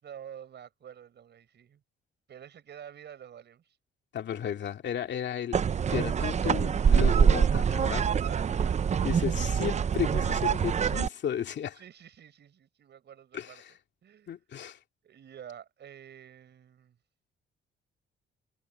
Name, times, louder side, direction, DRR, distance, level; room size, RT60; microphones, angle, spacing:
voice 1, 0.0-1.8 2.3-3.8 4.2-4.3 8.2-9.9 11.8-13.6 14.0-14.3 15.0-17.0, right 9 dB, 60° right, 5.9 m, -48 dB
voice 2, 4.1-5.6 5.9-8.1 9.0-11.8 13.3-13.7 14.3-14.8, left 9 dB, 65° left, 2.3 m, -34 dB
sound 1, 5.5-11.1, right 7 dB, 35° right, 0.6 m, -25 dB
cardioid pair, 90°, 20 cm